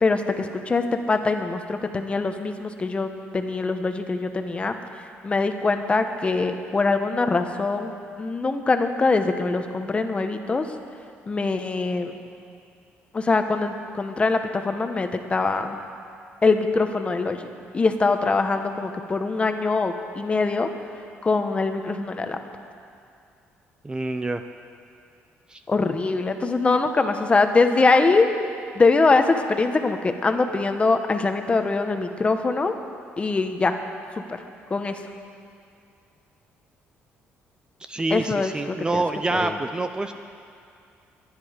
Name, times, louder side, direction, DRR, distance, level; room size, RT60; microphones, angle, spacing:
voice 1, 0.0-10.7 11.3-12.2 13.1-15.8 16.4-20.7 21.2-22.4 25.7-28.3 28.7-32.8 33.2-33.8 34.3-34.4 34.7-35.0 38.1-39.0 39.3-39.6, left 3 dB, 25° left, 7 dB, 1.1 m, -23 dB
voice 2, 23.8-24.4 25.5-25.6 37.9-40.1, right 2 dB, 20° right, 8 dB, 0.5 m, -26 dB
23.5 x 10.0 x 5.1 m, 2.4 s
cardioid pair, 110°, 5 cm